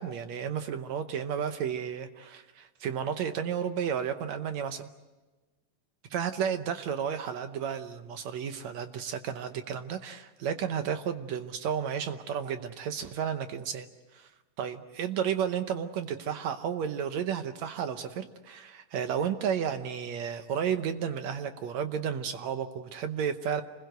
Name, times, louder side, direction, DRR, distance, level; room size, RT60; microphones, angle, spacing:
voice 1, 0.0-4.9 6.1-14.3 14.6-23.6, right 8 dB, 70° right, 8 dB, 2.0 m, -32 dB
27.5 x 21.0 x 8.0 m, 1.2 s
omnidirectional pair, 3.7 m